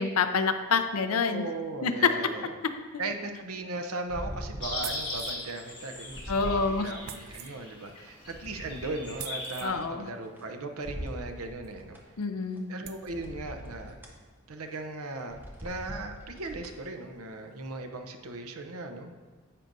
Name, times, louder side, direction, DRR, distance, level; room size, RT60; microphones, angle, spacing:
voice 1, 0.0-1.4 1.8-1.9 2.9-3.0 6.3-6.9 9.6-10.0 12.2-12.7, left 4 dB, 80° left, 8 dB, 0.6 m, -27 dB
voice 2, 1.3-2.6 3.0-12.0 12.7-14.0 14.5-19.1, right 2 dB, 80° right, 5 dB, 0.7 m, -38 dB
sound 1, 4.1-5.3 5.7-7.3 7.8-10.4 10.8-12.0 12.5-12.6 13.0-14.2 14.6-14.8 15.2-16.9 17.3-17.4, equal, 10° right, 0.9 m, -42 dB
sound 2, 4.6-9.7, left 2 dB, 20° left, 2.0 m, -39 dB
sound 3, 4.8-5.5 7.0-7.5 9.2-9.7 11.6-11.7 12.2-12.3 12.8-13.1, right 11 dB, 45° right, 0.3 m, -42 dB
9.9 x 7.5 x 2.6 m, 1.4 s
head